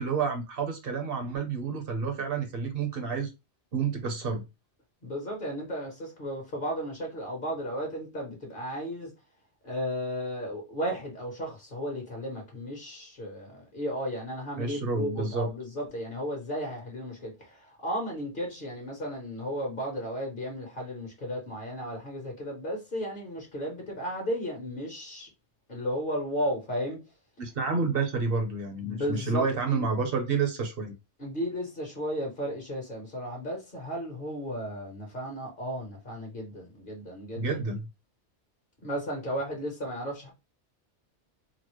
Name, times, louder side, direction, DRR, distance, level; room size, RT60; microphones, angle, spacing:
voice 1, 0.0-3.3 3.7-4.4 14.6-15.5 27.4-30.9 37.4-37.8, right 4 dB, 55° right, 0.9 m, -29 dB
voice 2, 5.0-9.1 9.6-25.3 25.7-27.0 28.8-29.9 31.2-37.6 38.8-40.3, equal, 50° left, 1.2 m, -34 dB
4.0 x 2.0 x 3.0 m
omnidirectional pair, 1.2 m